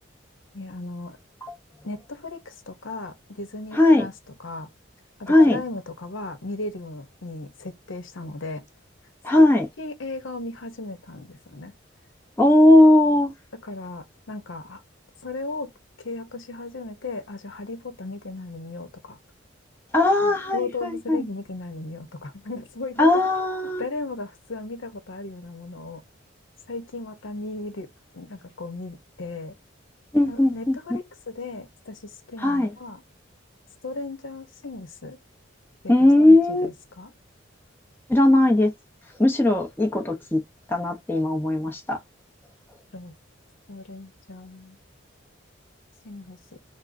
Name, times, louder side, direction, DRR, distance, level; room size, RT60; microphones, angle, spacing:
voice 1, 0.5-1.2 1.8-4.1 4.4-4.7 5.2-8.6 9.3-9.5 9.8-11.7 13.5-14.8 15.2-15.7 16.0-19.2 20.2-23.2 23.8-26.0 26.7-27.9 28.1-29.5 30.3-33.0 33.8-35.2 35.8-37.1 42.9-43.1 43.7-44.8 46.0-46.6, left 3 dB, 80° left, 0.8 m, -36 dB
voice 2, 3.7-4.1 5.3-5.6 9.2-9.7 12.4-13.3 19.9-21.2 23.0-23.8 30.1-30.8 32.4-32.7 35.9-36.7 38.1-38.7 39.2-40.4 40.7-42.0, left 1 dB, 10° left, 0.8 m, -18 dB
5.0 x 2.1 x 2.6 m
head